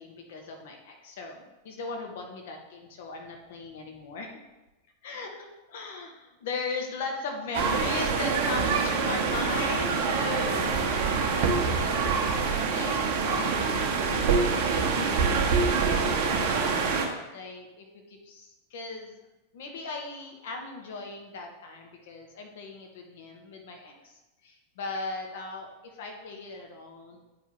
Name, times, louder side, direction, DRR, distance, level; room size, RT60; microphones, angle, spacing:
voice 1, 0.0-4.4 5.0-10.7 11.2-16.8 17.3-19.1 19.5-27.2, left 3 dB, 55° left, 2 dB, 1.1 m, -38 dB
sound 1, 7.5-17.1, right 5 dB, 45° right, 0.9 m, -25 dB
9.3 x 4.7 x 2.9 m, 1.1 s
figure-of-eight pair, 90°, 0 cm